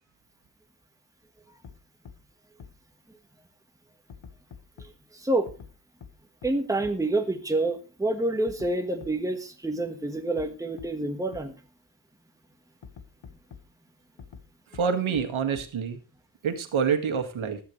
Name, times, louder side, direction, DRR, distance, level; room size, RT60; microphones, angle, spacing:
sound 1, 1.6-1.7 2.0-2.1 2.6-2.7 4.1-4.9 5.5-5.7 6.0-6.1 6.4-6.5 6.8-6.9 8.5-8.7 9.0-9.1 10.4-10.5 10.8-10.9 11.3-11.4 12.8-13.6 14.2-14.4 14.7-14.8 15.1-15.2 15.5-15.6, left 6 dB, 65° left, 1.6 m, -44 dB
voice 1, 4.8-5.5 6.4-11.5, right 2 dB, 5° right, 5 dB, 1.4 m, -28 dB
voice 2, 14.7-16.0 16.4-17.6, right 6 dB, 75° right, 5 dB, 1.9 m, -27 dB
15.0 x 11.5 x 3.2 m, 0.33 s
wide cardioid pair, 135°, 48 cm